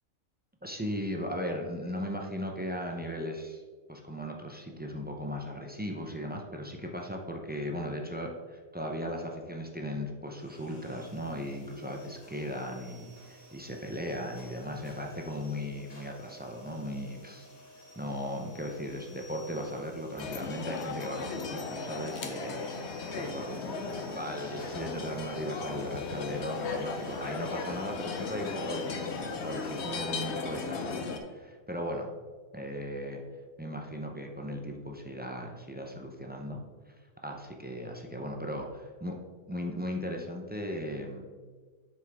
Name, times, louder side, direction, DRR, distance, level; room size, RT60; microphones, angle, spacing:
voice 1, 0.6-3.6 3.9-17.5 18.0-22.6 23.2-32.1 32.5-33.2 33.6-36.9 37.2-38.7 39.0-39.2 39.5-41.3, equal, 15° right, 1 dB, 0.4 m, -37 dB
sound 1, 10.3-29.9, equal, 35° left, 2.3 m, -54 dB
sound 2, 20.2-31.2, left 4 dB, 60° left, 1.0 m, -36 dB
7.7 x 6.1 x 3.5 m, 1.5 s
omnidirectional pair, 1.4 m